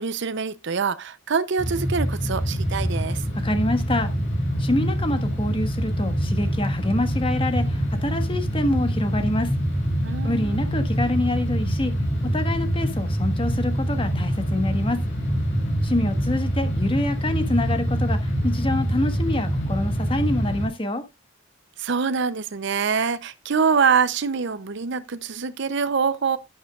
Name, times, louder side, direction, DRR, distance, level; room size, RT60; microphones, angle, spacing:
voice 1, 0.0-3.2 10.0-10.6 21.8-26.4, right 6 dB, 60° right, 0.6 m, -24 dB
sound 1, 1.6-20.7, equal, 55° left, 5.2 m, -25 dB
voice 2, 3.4-4.1 4.6-9.5 10.2-11.9 12.2-15.0 15.8-21.0, left 1 dB, 25° left, 1.4 m, -26 dB
11.0 x 10.0 x 2.4 m
head